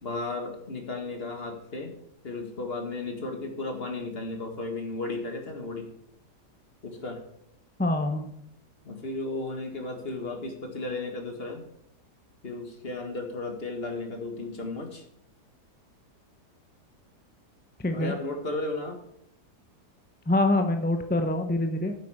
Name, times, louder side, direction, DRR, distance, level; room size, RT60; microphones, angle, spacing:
voice 1, 0.0-1.9 2.2-5.9 6.8-7.2 8.8-11.6 12.4-15.0 17.9-19.0, left 2 dB, 35° left, 4 dB, 1.9 m, -34 dB
voice 2, 7.8-8.3 17.8-18.1 20.3-22.0, left 2 dB, 15° left, 6 dB, 0.4 m, -25 dB
10.5 x 8.2 x 5.0 m, 0.75 s
omnidirectional pair, 1.8 m